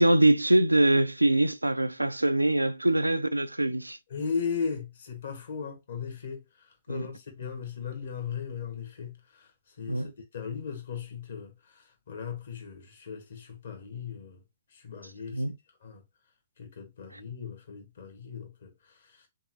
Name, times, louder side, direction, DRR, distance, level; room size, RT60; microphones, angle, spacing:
voice 1, 0.0-4.0 6.9-7.1 9.9-10.1 15.3-15.6 17.1-17.2, right 1 dB, 85° right, 0.3 m, -23 dB
voice 2, 4.1-9.5 9.8-14.4 14.7-15.4 15.8-16.0 16.6-18.7 19.0-19.2, left 6 dB, 60° left, 1.3 m, -37 dB
3.7 x 3.5 x 3.0 m
figure-of-eight pair, 115°, 0 cm